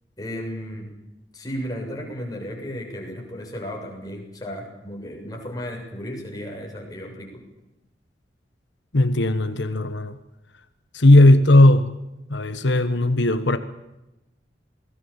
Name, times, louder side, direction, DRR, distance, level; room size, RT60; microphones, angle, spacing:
voice 1, 0.2-0.9 1.3-7.4, equal, 20° left, 7.1 m, -34 dB
voice 2, 8.9-10.2 10.9-11.9 12.3-13.6, left 1 dB, 90° left, 1.3 m, -16 dB
28.0 x 20.0 x 7.3 m
head